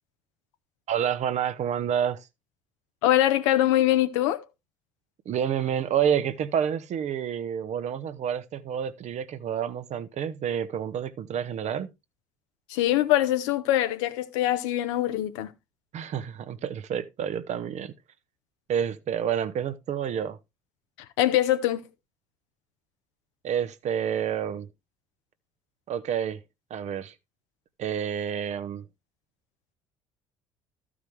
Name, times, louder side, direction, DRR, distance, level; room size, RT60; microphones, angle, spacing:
voice 1, 0.9-2.2 5.3-11.9 15.9-17.9 18.7-20.4 23.4-24.7 25.9-26.4 26.7-27.1 27.8-28.8, right 8 dB, 45° right, 0.9 m, -29 dB
voice 2, 3.0-4.4 12.7-15.5 21.2-21.8, left 13 dB, 70° left, 1.0 m, -23 dB
14.0 x 4.9 x 3.2 m
figure-of-eight pair, 55°, 16 cm